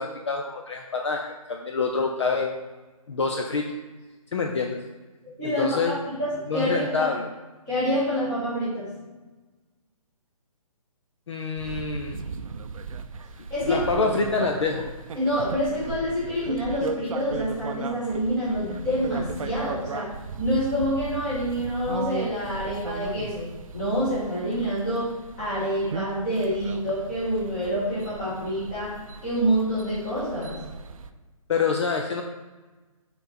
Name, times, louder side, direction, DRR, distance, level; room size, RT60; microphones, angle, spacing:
voice 1, 0.0-2.5 3.1-3.7 4.3-4.8 5.4-6.0 6.5-7.3 11.3-12.2 13.7-14.9 31.5-32.2, left 4 dB, 50° left, 2 dB, 0.6 m, -26 dB
voice 2, 5.4-7.1 7.7-8.9 13.5-13.8 15.1-20.1 20.4-23.5 23.7-30.6, equal, 15° left, -9 dB, 1.8 m, -27 dB
sound 1, 11.6-31.1, right 5 dB, 65° right, 0.5 m, -37 dB
5.7 x 4.0 x 4.4 m, 1.2 s
hypercardioid pair, 175°, 19 cm